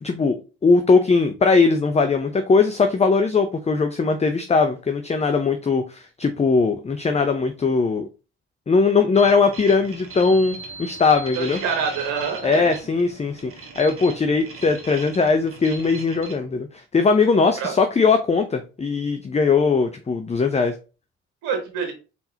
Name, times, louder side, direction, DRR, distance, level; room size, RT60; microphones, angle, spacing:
voice 1, 0.0-8.1 8.7-11.6 12.4-13.5 13.8-20.7, left 4 dB, 20° left, 7 dB, 0.6 m, -20 dB
sound 1, 9.1-16.3, right 4 dB, 45° right, 1.3 m, -39 dB
voice 2, 11.3-12.8 17.6-17.7 21.4-21.9, right 6 dB, 75° right, 5 dB, 1.1 m, -26 dB
4.2 x 3.7 x 2.8 m, 0.32 s
hypercardioid pair, 45°, 31 cm